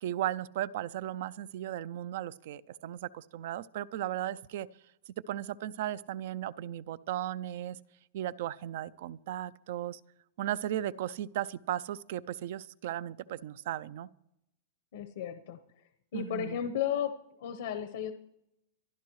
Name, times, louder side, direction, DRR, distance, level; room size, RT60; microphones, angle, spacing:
voice 1, 0.0-4.7 5.3-7.8 8.1-10.0 10.4-14.1 16.1-16.6, right 12 dB, 60° right, 18 dB, 0.5 m, -36 dB
voice 2, 14.9-15.6 16.1-17.1 17.4-18.1, left 9 dB, 75° left, 9 dB, 1.0 m, -33 dB
25.5 x 11.5 x 3.2 m, 0.84 s
supercardioid pair, 155°, 0 cm